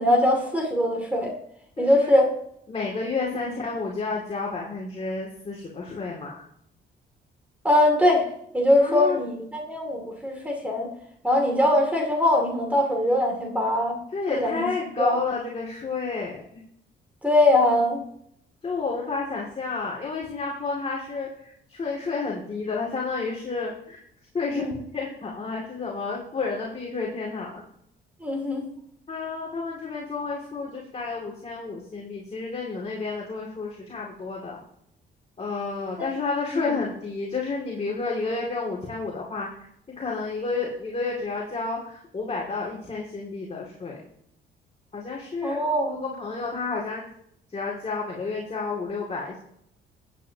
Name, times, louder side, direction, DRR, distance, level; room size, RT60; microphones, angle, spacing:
voice 1, 0.0-1.3 1.8-2.3 3.3-3.4 7.6-8.2 8.5-10.9 11.2-14.0 14.3-14.7 15.0-15.2 17.2-18.0 24.5-24.8 28.2-28.6 36.0-36.1 36.5-36.8 45.4-46.1, left 1 dB, 5° right, 0 dB, 2.6 m, -22 dB
voice 2, 1.8-2.1 2.7-6.4 8.8-9.2 14.1-16.6 18.6-24.0 24.3-24.6 24.9-27.6 29.1-34.6 35.4-39.5 39.9-44.0 44.9-45.6 45.9-47.1 47.5-49.4, left 4 dB, 30° left, -3 dB, 2.5 m, -31 dB
14.5 x 8.6 x 2.9 m, 0.71 s
cardioid pair, 90°, 20 cm